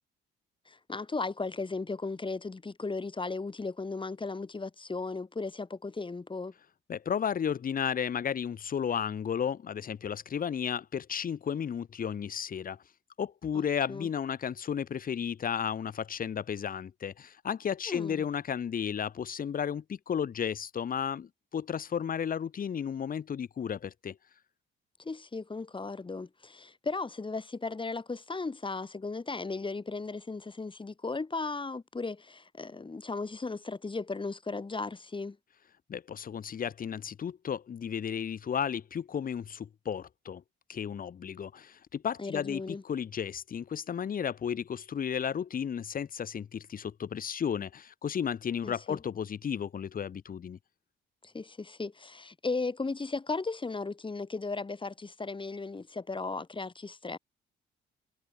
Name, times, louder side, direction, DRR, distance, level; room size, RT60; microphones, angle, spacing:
voice 1, 0.7-6.5 13.5-14.1 17.9-18.2 25.0-35.4 42.2-42.8 48.6-49.0 51.2-57.2, left 3 dB, 25° left, 7.4 m, -36 dB
voice 2, 6.9-12.8 13.2-24.2 35.9-40.4 40.7-50.6, left 8 dB, 45° left, 1.3 m, -33 dB
cardioid pair, 90°, 20 cm